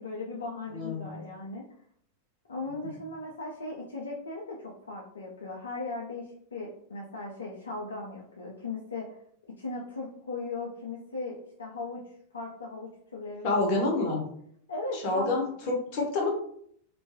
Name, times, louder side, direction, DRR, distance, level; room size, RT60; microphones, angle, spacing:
voice 1, 0.0-1.6 2.5-9.2 9.5-12.0 12.3-13.4 13.8-14.2 14.7-15.4, left 3 dB, 70° left, -2 dB, 0.4 m, -38 dB
voice 2, 0.7-1.2 2.8-3.0 13.4-14.3 14.9-16.3, left 2 dB, 45° left, 0 dB, 0.7 m, -28 dB
2.4 x 2.2 x 2.6 m, 0.65 s
figure-of-eight pair, 90°, 0 cm